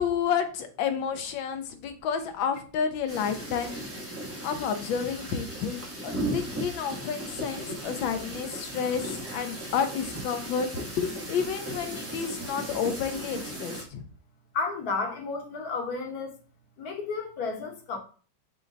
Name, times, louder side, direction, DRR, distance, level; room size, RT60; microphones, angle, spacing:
voice 1, 0.0-3.8 4.4-10.7 11.0-14.0, left 7 dB, 85° left, 1.5 m, -30 dB
sound 1, 3.1-13.8, right 1 dB, 15° right, 0.5 m, -36 dB
voice 2, 14.5-16.3 16.8-18.0, left 4 dB, 60° left, 1.3 m, -32 dB
6.1 x 2.2 x 3.9 m
omnidirectional pair, 2.1 m